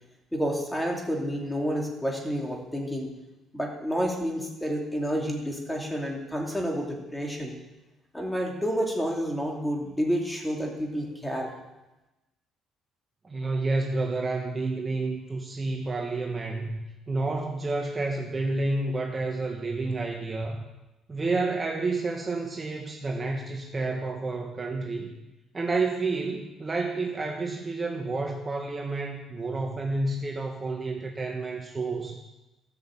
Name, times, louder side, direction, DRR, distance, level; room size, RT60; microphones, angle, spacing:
voice 1, 0.3-3.1 3.5-7.6 8.1-11.5, equal, 5° left, 0 dB, 2.7 m, -29 dB
voice 2, 13.2-16.8 17.1-20.6 21.1-25.1 25.5-32.2, right 3 dB, 25° right, 2 dB, 1.3 m, -30 dB
13.5 x 6.4 x 7.3 m, 1.0 s
cardioid pair, 95°, 0 cm